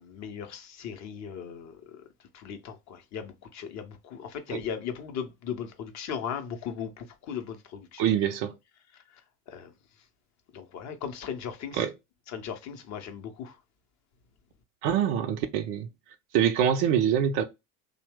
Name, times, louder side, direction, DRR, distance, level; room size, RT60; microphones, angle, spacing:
voice 1, 0.0-2.0 2.3-8.0 8.9-9.2 9.5-9.7 10.5-11.9 12.3-13.6, left 7 dB, 35° left, 0.6 m, -38 dB
voice 2, 8.0-8.5 11.7-11.9 14.8-15.9 16.3-17.4, right 9 dB, 45° right, 0.5 m, -25 dB
2.7 x 2.0 x 3.3 m
hypercardioid pair, 75°, 46 cm